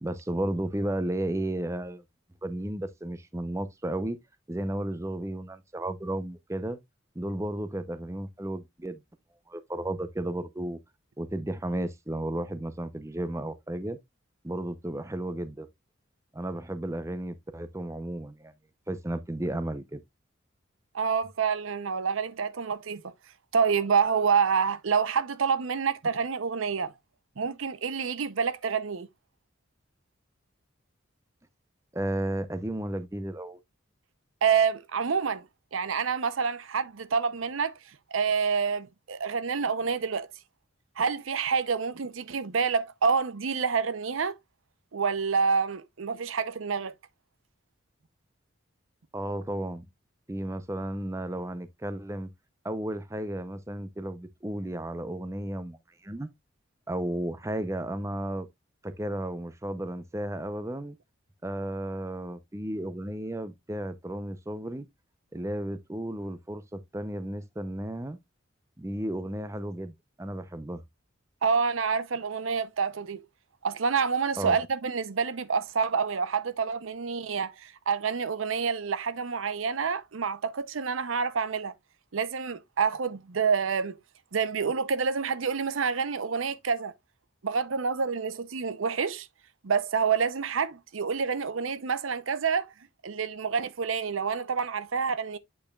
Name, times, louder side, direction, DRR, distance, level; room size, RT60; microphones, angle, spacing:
voice 1, 0.0-2.0 2.4-4.2 4.5-6.8 7.2-9.0 9.5-10.8 11.2-14.0 14.4-15.7 16.3-18.5 18.9-20.0 31.9-33.6 49.1-49.8 50.3-52.3 52.6-55.8 56.0-56.3 56.9-58.5 58.8-61.0 61.4-64.8 65.3-68.2 68.8-69.9 70.2-70.8 74.3-74.6, right 1 dB, 15° right, 0.6 m, -33 dB
voice 2, 20.9-23.1 23.5-26.9 27.4-29.1 34.4-35.5 35.7-37.8 38.1-40.3 41.0-44.4 44.9-46.9 71.4-73.2 73.6-81.7 82.1-84.0 84.3-86.9 87.4-89.3 89.6-92.7 93.0-95.4, right 5 dB, 80° right, 0.6 m, -28 dB
8.6 x 5.4 x 2.3 m
head